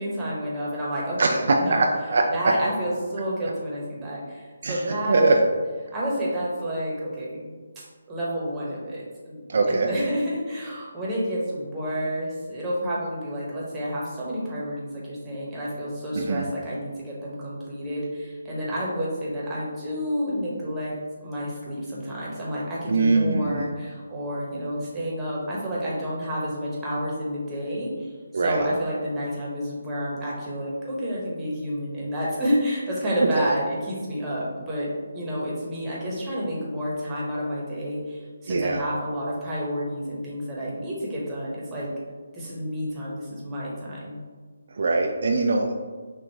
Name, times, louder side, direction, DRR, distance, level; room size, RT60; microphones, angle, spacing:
voice 1, 0.0-1.9 2.3-5.3 5.9-7.5 7.7-9.4 9.7-20.9 21.2-41.9 42.3-44.2, equal, 15° right, -6 dB, 1.1 m, -30 dB
voice 2, 1.2-2.2 4.6-5.4 9.5-9.9 16.2-16.4 22.9-23.7 28.3-28.7 33.3-33.6 38.5-38.8 44.8-45.7, right 3 dB, 60° right, 2 dB, 0.4 m, -22 dB
5.9 x 2.5 x 3.0 m, 1.5 s
figure-of-eight pair, 155°, 0 cm